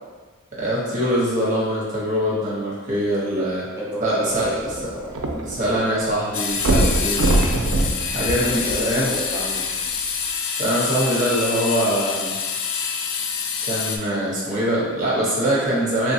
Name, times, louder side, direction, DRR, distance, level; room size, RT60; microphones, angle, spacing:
voice 1, 0.6-3.6 4.0-4.5 5.5-7.2 7.7-9.1 10.6-12.3 13.7-16.1, equal, 35° right, -6 dB, 0.9 m, -23 dB
voice 2, 3.8-5.2 8.4-9.7, equal, 15° right, -6 dB, 0.6 m, -30 dB
sound 1, 4.3-5.8 6.1-6.2 6.6-9.2 9.9-10.0, right 2 dB, 80° right, 0.4 m, -22 dB
sound 2, 6.3-14.0, left 6 dB, 65° left, 0.3 m, -26 dB
3.2 x 2.3 x 2.7 m, 1.3 s
head